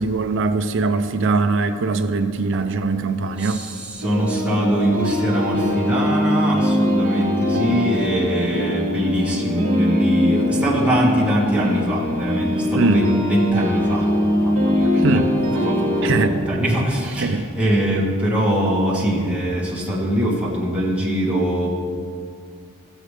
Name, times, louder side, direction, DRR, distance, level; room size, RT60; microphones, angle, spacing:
voice 1, 0.0-3.6 12.7-13.1 15.0-15.3 16.0-16.4 17.2-17.4, right 3 dB, 60° right, 0.5 m, -21 dB
voice 2, 3.4-14.1 14.4-15.3 15.6-21.7, right 1 dB, 5° right, 1.6 m, -22 dB
sound 1, 4.0-16.3, left 1 dB, 80° right, 1.6 m, -21 dB
13.5 x 8.0 x 3.3 m
head